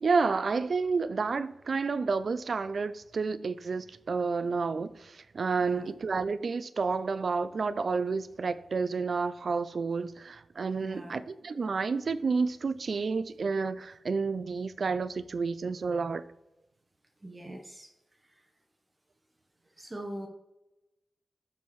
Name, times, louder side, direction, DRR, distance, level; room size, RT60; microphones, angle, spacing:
voice 1, 0.0-16.2, right 4 dB, 60° right, 0.4 m, -30 dB
voice 2, 5.6-5.9 10.8-11.2 17.2-17.9 18.3-18.4 19.8-20.3, right 1 dB, 25° right, 1.0 m, -42 dB
12.5 x 4.5 x 3.2 m
wide cardioid pair, 75°, 0 cm